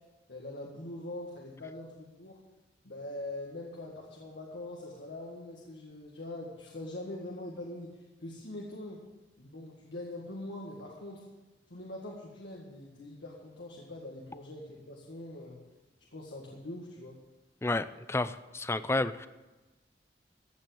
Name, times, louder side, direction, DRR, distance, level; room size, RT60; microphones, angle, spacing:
voice 1, 0.3-2.4 2.8-7.9 8.2-9.0 9.4-11.3 11.7-15.6 16.1-17.2, left 1 dB, 85° left, -3 dB, 2.0 m, -43 dB
voice 2, 17.6-19.3, left 2 dB, 15° left, 13 dB, 0.4 m, -31 dB
15.0 x 7.2 x 7.8 m, 1.2 s
head